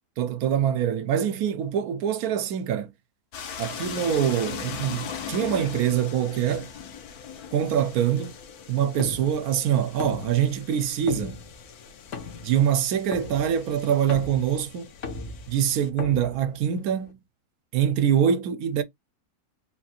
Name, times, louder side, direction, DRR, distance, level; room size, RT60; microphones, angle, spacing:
voice 1, 0.2-2.9 3.6-6.7 7.5-8.3 8.7-11.4 12.4-14.9 15.5-17.2 17.7-18.8, right 9 dB, 80° right, 1.1 m, -24 dB
sound 1, 3.3-15.9, left 7 dB, 85° left, 1.3 m, -40 dB
sound 2, 6.4-17.1, left 5 dB, 60° left, 1.3 m, -40 dB
3.9 x 2.4 x 4.2 m
omnidirectional pair, 1.5 m